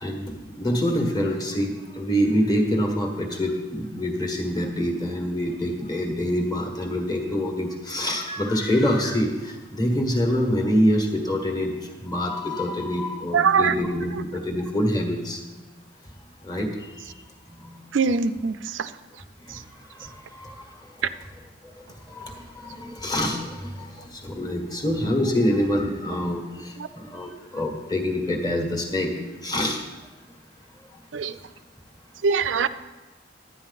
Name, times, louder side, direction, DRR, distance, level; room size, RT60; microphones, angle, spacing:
voice 1, 0.0-11.7 12.0-15.4 16.4-16.7 17.5-17.7 19.5-19.6 20.0-20.6 21.6-21.7 22.1-29.1 29.4-29.8, equal, 20° left, 2 dB, 1.6 m, -26 dB
voice 2, 13.3-13.9 14.1-14.2 17.9-18.9 19.5-19.6 26.8-26.9 31.1-31.4 32.2-32.7, right 5 dB, 70° right, 13 dB, 0.5 m, -23 dB
12.0 x 9.6 x 4.1 m, 1.2 s
head